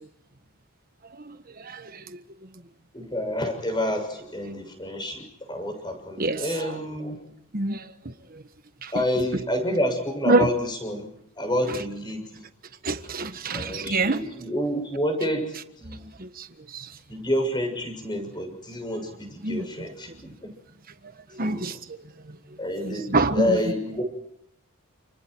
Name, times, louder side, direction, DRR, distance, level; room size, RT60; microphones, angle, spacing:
voice 1, 1.2-2.0 6.2-6.5 7.5-7.9 8.3-8.4 8.8-8.9 10.3-10.5 12.8-14.2 16.2-16.5 16.7-16.9 19.4-19.9 21.3-22.0 22.9-23.6, right 2 dB, 40° right, 1.4 m, -26 dB
voice 2, 2.9-7.2 8.9-11.1 11.4-12.4 13.5-16.1 17.1-20.1 21.4-21.8 22.6-24.0, equal, 20° left, 6.7 m, -28 dB
29.5 x 29.5 x 4.7 m
head